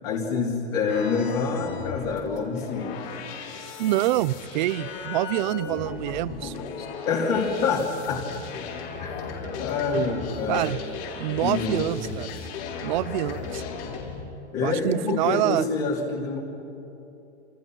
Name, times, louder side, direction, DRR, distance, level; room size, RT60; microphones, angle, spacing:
voice 1, 0.0-3.1 5.9-6.1 6.4-6.5 6.8-8.3 8.5-8.6 9.0-10.6 11.4-12.0 14.5-16.4, left 4 dB, 35° left, -2 dB, 3.2 m, -27 dB
sound 1, 0.9-14.2, left 5 dB, 50° left, 5.2 m, -36 dB
voice 2, 3.8-6.5 9.9-10.0 10.5-10.8 11.2-12.3 12.8-13.6 14.6-15.7, right 16 dB, 40° right, 18 dB, 0.7 m, -26 dB
28.5 x 28.0 x 6.3 m, 2.8 s
hypercardioid pair, 150°, 35 cm